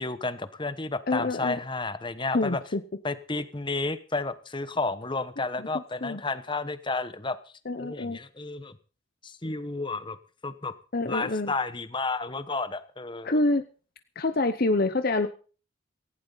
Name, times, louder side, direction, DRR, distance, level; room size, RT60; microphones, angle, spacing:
voice 1, 0.0-2.6 3.0-7.4 7.8-8.8 9.2-10.2 10.4-10.7 11.1-13.4, left 3 dB, 25° left, 12 dB, 1.0 m, -31 dB
voice 2, 1.1-1.6 2.3-2.8 5.6-5.7 6.0-6.2 7.7-8.2 10.9-11.5 13.2-13.6 14.2-15.3, left 2 dB, 45° left, 9 dB, 0.8 m, -26 dB
18.0 x 16.0 x 4.0 m, 0.39 s
head